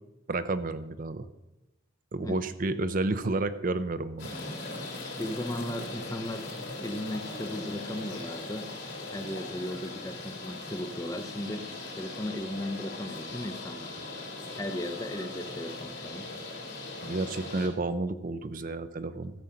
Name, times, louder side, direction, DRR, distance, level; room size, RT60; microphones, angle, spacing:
voice 1, 0.3-1.3 2.1-4.3 17.0-19.3, right 2 dB, 45° right, 11 dB, 0.6 m, -31 dB
sound 1, 4.2-17.7, left 2 dB, 60° left, 3.3 m, -39 dB
voice 2, 5.2-6.5 6.8-8.7 9.1-11.7 12.0-14.0 14.6-16.3, left 1 dB, 15° left, 8 dB, 0.7 m, -36 dB
14.0 x 7.7 x 5.7 m, 0.97 s
head